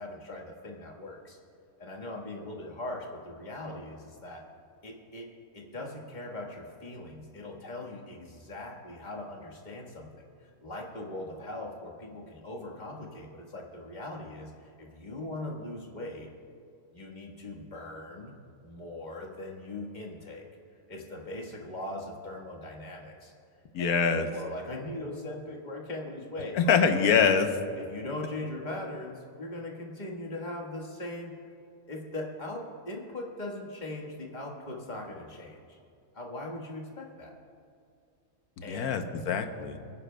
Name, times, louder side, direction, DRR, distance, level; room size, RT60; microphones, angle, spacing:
voice 1, 0.0-1.4 1.8-4.4 4.8-16.3 16.9-18.3 18.6-20.4 20.9-23.3 23.8-26.6 26.9-27.0 27.8-31.4 31.9-35.8 36.1-37.3 38.6-38.9, left 1 dB, 30° left, -1 dB, 1.6 m, -40 dB
voice 2, 23.7-24.3 26.5-27.5 38.7-39.8, left 6 dB, 75° left, 7 dB, 1.3 m, -24 dB
24.0 x 10.0 x 2.2 m, 2.5 s
omnidirectional pair, 1.6 m